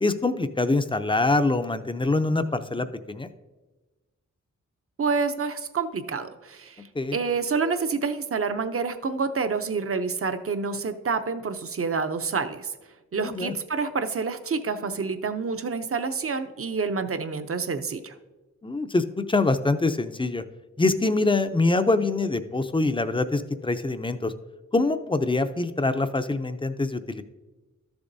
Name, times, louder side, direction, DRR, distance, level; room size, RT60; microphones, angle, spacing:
voice 1, 0.0-3.3 7.0-7.2 13.1-13.5 18.6-20.4 20.8-24.3 24.7-27.2, left 2 dB, 15° left, 10 dB, 0.4 m, -24 dB
voice 2, 5.0-6.8 7.1-12.7 13.1-18.1, right 5 dB, 45° right, 9 dB, 0.6 m, -28 dB
13.0 x 6.9 x 2.7 m, 1.2 s
wide cardioid pair, 70°, 30 cm